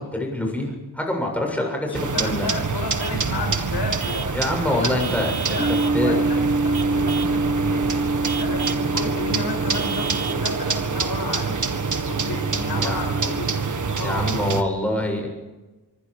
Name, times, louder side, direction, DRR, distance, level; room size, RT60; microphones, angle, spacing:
voice 1, 0.0-2.5 4.3-6.2 12.8-13.0 13.9-15.3, left 1 dB, 5° left, 1 dB, 7.3 m, -26 dB
voice 2, 1.5-4.4 4.6-7.9 8.4-11.6 12.1-13.5 14.0-14.3, left 3 dB, 85° left, 4 dB, 5.4 m, -32 dB
sound 1, 1.9-14.6, right 5 dB, 50° right, 1.8 m, -26 dB
Vehicle horn car horn honking / Truck, 3.0-3.3 4.0-4.4 5.0-6.0 6.7-7.4 8.2-8.9 9.7-10.5, right 7 dB, 70° right, 1.2 m, -33 dB
sound 2, 5.6-13.4, right 2 dB, 15° right, 3.7 m, -27 dB
26.0 x 24.0 x 5.0 m, 1.2 s
wide cardioid pair, 120°, 40 cm